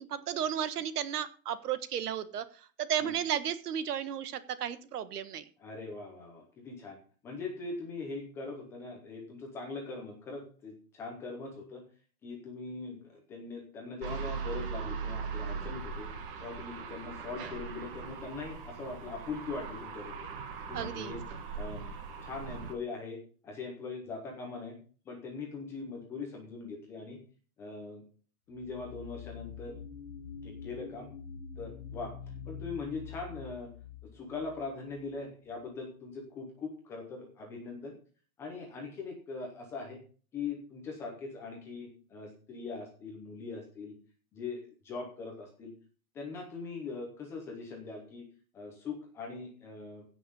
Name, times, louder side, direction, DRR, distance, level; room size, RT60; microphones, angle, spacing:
voice 1, 0.0-2.4 2.8-5.4 20.7-21.1, right 9 dB, 75° right, 13 dB, 1.5 m, -33 dB
voice 2, 5.6-7.0 7.2-11.8 12.2-16.1 16.4-20.3 20.7-21.2 21.5-21.9 22.2-23.2 23.4-24.8 25.1-27.2 27.6-28.0 28.5-29.7 30.4-31.1 31.6-32.1 32.5-33.7 34.0-37.9 38.4-40.0 40.3-43.9 44.3-45.7 46.1-48.2 48.5-50.0, left 4 dB, 5° left, 0 dB, 0.7 m, -41 dB
sound 1, 14.0-22.7, right 5 dB, 35° right, 1.7 m, -40 dB
sound 2, 28.5-35.1, left 7 dB, 50° left, 1.2 m, -46 dB
16.0 x 6.0 x 5.4 m, 0.40 s
supercardioid pair, 180°, 46 cm